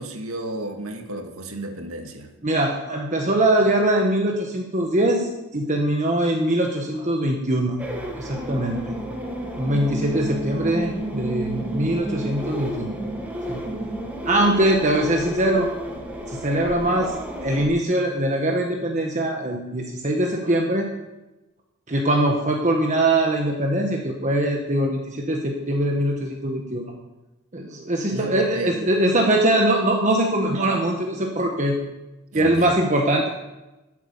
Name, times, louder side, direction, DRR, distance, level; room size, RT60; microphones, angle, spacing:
voice 1, 0.0-2.3 28.1-28.9 32.3-32.7, right 1 dB, 75° right, 4 dB, 2.1 m, -32 dB
voice 2, 2.4-7.8 8.2-8.9 9.6-12.9 13.5-13.6 14.2-15.7 16.3-17.1 17.4-20.9 21.9-26.8 27.5-31.8 32.3-33.3, right 1 dB, 35° right, 1 dB, 1.4 m, -22 dB
sound 1, 7.8-17.7, right 1 dB, 5° right, 2.1 m, -31 dB
13.5 x 8.4 x 7.3 m, 1.0 s
head